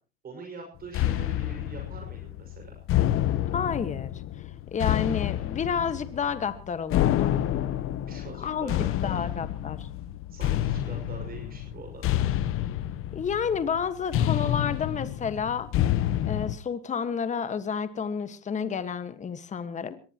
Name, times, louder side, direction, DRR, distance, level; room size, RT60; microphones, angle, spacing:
voice 1, 0.2-2.7 8.1-9.2 10.3-12.0, right 3 dB, 30° right, 3 dB, 6.0 m, -43 dB
sound 1, 0.9-16.6, left 12 dB, 40° left, 1.1 m, -28 dB
voice 2, 3.5-4.1 4.7-7.4 8.4-8.7 9.0-9.9 13.1-15.7 16.3-20.0, left 6 dB, 20° left, 11 dB, 1.6 m, -30 dB
23.0 x 19.0 x 3.0 m, 0.36 s
supercardioid pair, 130°, 32 cm